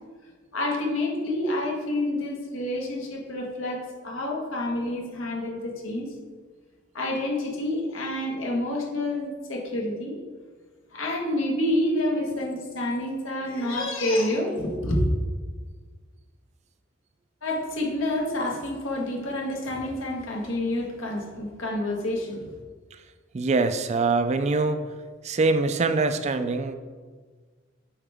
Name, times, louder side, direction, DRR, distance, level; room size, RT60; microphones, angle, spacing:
voice 1, 0.5-6.1 6.9-10.2 10.9-15.0 17.4-22.5, left 1 dB, 85° left, -1 dB, 1.5 m, -28 dB
voice 2, 23.3-24.8 25.2-26.7, right 3 dB, 35° right, 9 dB, 0.4 m, -24 dB
8.8 x 4.7 x 3.5 m, 1.5 s
head